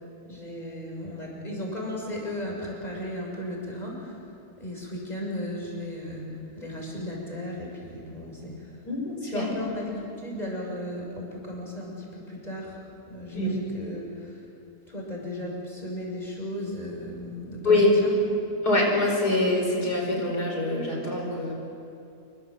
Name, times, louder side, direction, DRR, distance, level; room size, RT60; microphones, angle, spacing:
voice 1, 0.3-4.2 4.6-6.3 6.6-8.7 9.2-12.8 13.0-14.4 14.9-18.1, left 1 dB, 25° left, -2 dB, 6.7 m, -35 dB
voice 2, 8.9-9.5 13.3-13.5 17.6-17.9 18.6-21.5, left 2 dB, 90° left, 0 dB, 5.7 m, -24 dB
28.0 x 23.5 x 7.7 m, 2.7 s
omnidirectional pair, 1.6 m